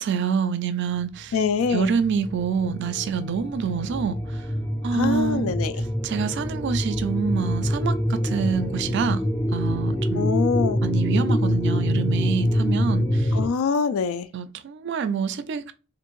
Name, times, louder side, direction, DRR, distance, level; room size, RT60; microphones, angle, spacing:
voice 1, 0.0-1.3 1.7-4.2 4.8-5.5 6.0-9.2 9.5-10.3 10.8-13.3 14.3-15.7, right 6 dB, 55° right, 0.4 m, -26 dB
voice 2, 1.3-1.9 4.9-5.8 10.2-10.8 13.3-14.3, left 6 dB, 75° left, 0.4 m, -24 dB
sound 1, 1.5-13.5, equal, 15° left, 0.5 m, -25 dB
3.3 x 2.5 x 3.0 m
head